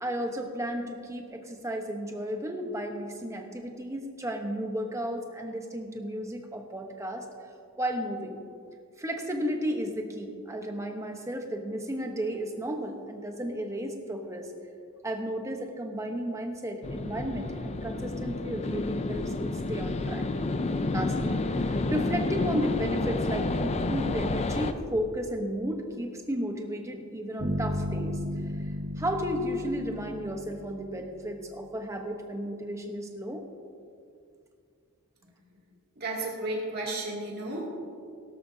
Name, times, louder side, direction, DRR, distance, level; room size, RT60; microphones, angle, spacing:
voice 1, 0.0-7.2 7.8-8.4 9.0-14.5 15.0-20.3 20.9-28.2 29.0-33.4, equal, 15° right, 3 dB, 1.0 m, -33 dB
sound 1, 16.8-24.7, left 2 dB, 30° left, 0.4 m, -30 dB
sound 2, 27.4-31.4, equal, 80° right, 1.8 m, -34 dB
voice 2, 36.0-37.7, right 2 dB, 45° right, -3 dB, 2.6 m, -33 dB
17.5 x 12.5 x 2.8 m, 2.3 s
head